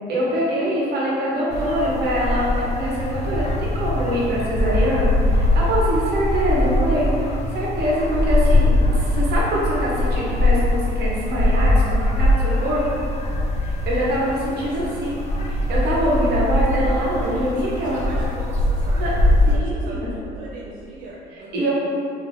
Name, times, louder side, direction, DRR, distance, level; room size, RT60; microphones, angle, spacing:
voice 1, 0.1-12.8 13.6-18.0 19.0-19.1 19.5-20.1 21.5-21.7, equal, 75° right, -5 dB, 1.1 m, -24 dB
sound 1, 1.5-19.6, left 1 dB, 40° left, 0.6 m, -21 dB
voice 2, 14.5-15.2 17.2-21.7, right 2 dB, 50° right, -4 dB, 0.5 m, -39 dB
3.6 x 2.8 x 3.6 m, 2.6 s
cardioid pair, 110°, 17 cm